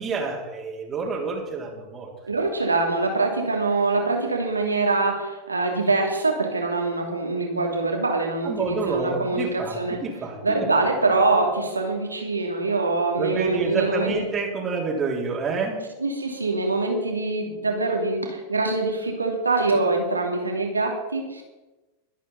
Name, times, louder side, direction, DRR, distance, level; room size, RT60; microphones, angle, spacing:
voice 1, 0.0-2.1 8.4-10.7 13.2-15.9, right 4 dB, 20° right, -3 dB, 3.1 m, -28 dB
voice 2, 2.3-10.0 10.4-14.1 16.0-21.4, right 3 dB, 80° right, 1 dB, 2.6 m, -24 dB
22.5 x 8.5 x 4.1 m, 1.1 s
figure-of-eight pair, 90°, 0 cm